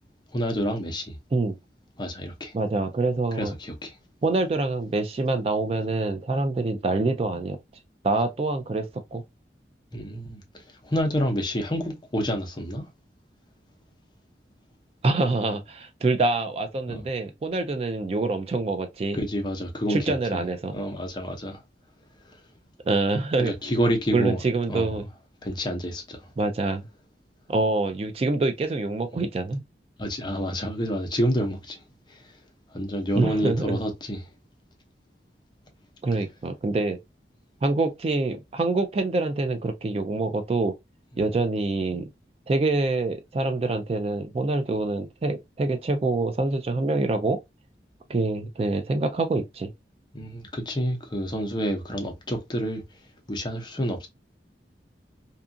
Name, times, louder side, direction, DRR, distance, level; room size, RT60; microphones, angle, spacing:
voice 1, 0.3-1.2 2.0-2.5 3.4-4.0 9.9-10.4 10.8-12.9 16.9-17.0 19.1-20.4 20.7-21.6 22.3-22.4 23.4-24.4 24.7-25.0 25.4-26.3 30.0-31.8 32.1-32.4 32.7-34.3 50.1-52.8 53.3-54.1, equal, 25° left, 0.6 m, -28 dB
voice 2, 2.5-3.5 4.2-7.6 8.0-9.2 15.0-19.2 19.9-20.8 22.9-23.5 24.1-25.1 26.4-26.8 27.5-29.6 33.2-33.8 36.0-37.0 37.6-40.7 41.2-42.1 42.5-47.4 48.1-49.7, right 3 dB, 35° right, 0.3 m, -25 dB
2.7 x 2.4 x 2.5 m
head